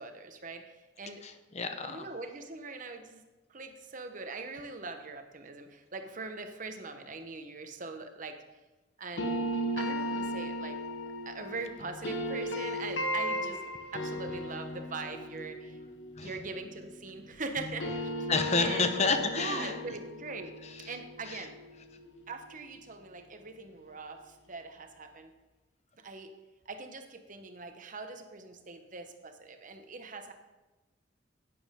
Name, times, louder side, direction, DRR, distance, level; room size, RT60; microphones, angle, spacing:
voice 1, 0.0-1.2 1.8-3.2 3.5-8.4 9.0-9.5 9.7-10.8 11.2-13.6 13.9-15.8 16.2-18.1 18.6-18.9 19.3-20.6 20.8-21.6 22.3-25.3 26.0-26.3 26.7-30.3, right 3 dB, 45° right, 6 dB, 1.0 m, -42 dB
voice 2, 1.2-2.1 16.2-16.4 18.3-20.0 20.6-21.0 21.2-21.5, left 4 dB, 35° left, 7 dB, 0.9 m, -30 dB
sound 1, 9.2-17.3 17.6-22.5, equal, 75° left, 1.0 m, -36 dB
10.5 x 9.7 x 3.7 m, 1.1 s
head